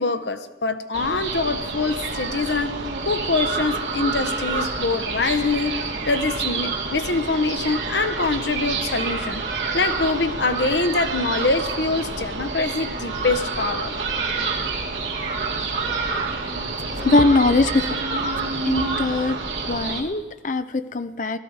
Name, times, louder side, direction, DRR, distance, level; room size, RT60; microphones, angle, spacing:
voice 1, 0.0-2.8 3.0-9.4 9.7-13.9, left 3 dB, 75° left, 10 dB, 0.9 m, -24 dB
sound 1, 0.9-20.0, right 4 dB, 80° right, 2.3 m, -28 dB
voice 2, 16.9-18.0 18.5-19.4 19.7-21.4, left 2 dB, 45° left, 11 dB, 0.6 m, -21 dB
17.5 x 13.5 x 4.7 m, 1.3 s
head